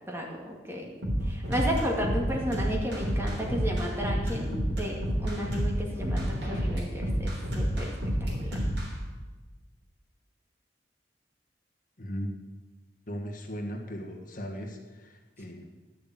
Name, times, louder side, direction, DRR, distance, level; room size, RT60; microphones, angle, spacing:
voice 1, 0.1-0.9 1.3-8.1 8.4-8.6, equal, 15° right, -1 dB, 2.2 m, -33 dB
sound 1, 1.0-8.9, equal, 75° right, 3.6 m, -29 dB
voice 2, 12.0-12.3 13.1-15.6, equal, 50° left, 2 dB, 1.6 m, -37 dB
12.0 x 6.7 x 9.0 m, 1.3 s
head